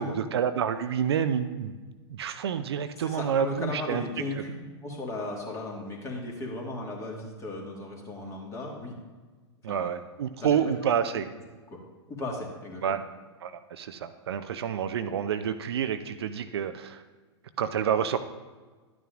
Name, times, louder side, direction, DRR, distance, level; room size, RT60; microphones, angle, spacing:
voice 1, 0.0-1.7 2.1-4.0 9.6-11.3 12.8-13.0 13.4-17.0 17.6-18.2, right 8 dB, 60° right, 10 dB, 0.5 m, -28 dB
voice 2, 3.0-4.5 4.8-9.0 9.7-10.0 10.4-10.6 11.1-11.2 11.7-11.8 12.1-13.0, left 2 dB, 20° left, -1 dB, 1.8 m, -36 dB
12.0 x 9.4 x 2.5 m, 1.3 s
figure-of-eight pair, 105°, 15 cm